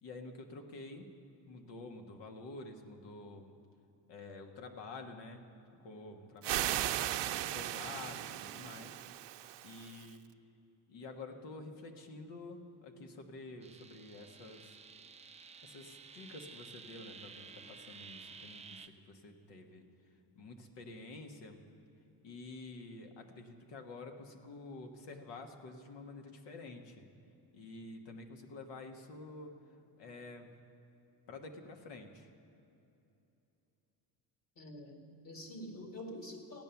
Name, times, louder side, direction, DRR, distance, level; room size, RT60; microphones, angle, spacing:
voice 1, 0.0-1.1 1.5-3.5 4.1-5.4 5.8-6.9 7.5-9.0 9.6-10.2 10.9-14.8 15.6-21.6 22.2-27.1 27.5-30.6 31.3-32.3, left 3 dB, 80° left, 4 dB, 1.4 m, -49 dB
sound 1, 6.4-10.1, right 13 dB, 80° right, 0.7 m, -37 dB
sound 2, 13.6-18.9, right 5 dB, 15° right, 0.5 m, -53 dB
voice 2, 34.6-36.6, left 1 dB, 50° left, 3 dB, 2.1 m, -47 dB
16.0 x 9.2 x 7.0 m, 2.9 s
cardioid pair, 125°, 42 cm